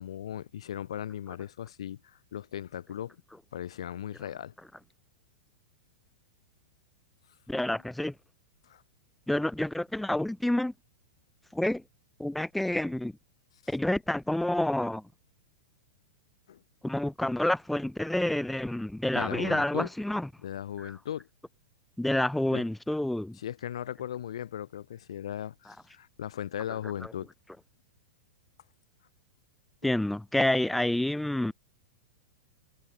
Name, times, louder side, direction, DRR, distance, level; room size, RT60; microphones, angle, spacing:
voice 1, 0.0-3.2 3.5-4.5 8.6-8.8 16.5-16.6 19.1-19.9 20.4-21.3 22.5-22.6 23.4-27.3 29.8-29.9, left 10 dB, 60° left, 7.8 m, -37 dB
voice 2, 7.5-8.1 9.3-10.7 11.5-11.8 12.2-13.1 13.7-15.0 16.8-20.3 20.8-20.9 22.0-23.4 27.0-27.1 29.8-31.5, left 1 dB, 5° left, 4.2 m, -28 dB
figure-of-eight pair, 100°, 3 cm